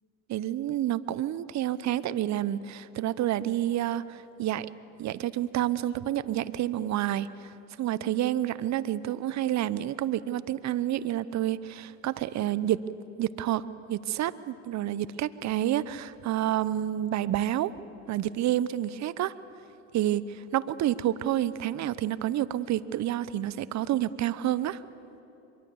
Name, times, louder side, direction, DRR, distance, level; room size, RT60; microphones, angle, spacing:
voice 1, 0.3-4.7 5.0-7.5 7.8-12.8 13.2-17.7 18.1-19.3 19.9-24.8, right 12 dB, 40° right, 16 dB, 0.9 m, -29 dB
24.5 x 23.0 x 7.2 m, 2.9 s
hypercardioid pair, 85°, 44 cm